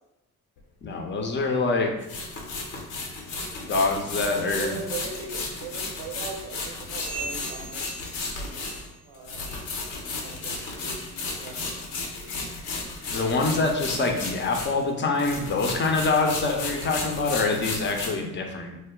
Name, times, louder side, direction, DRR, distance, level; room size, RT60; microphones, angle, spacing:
sound 1, 0.6-0.7 2.0-14.9 15.1-18.1, left 3 dB, 75° left, 0.7 m, -34 dB
voice 1, 0.8-1.9 3.7-4.8 13.1-18.8, left 3 dB, 25° left, 2 dB, 0.6 m, -25 dB
voice 2, 4.4-8.0 8.3-8.7 9.0-9.5 10.1-11.8 12.1-12.3, right 4 dB, 85° right, -1 dB, 0.7 m, -40 dB
sound 2, 6.9-9.1 9.4-9.8 10.2-10.5 11.1-11.2 11.9-12.0 12.7-12.8, right 3 dB, 15° right, 0.3 m, -40 dB
2.1 x 2.0 x 3.6 m, 0.91 s
hypercardioid pair, 45°, 45 cm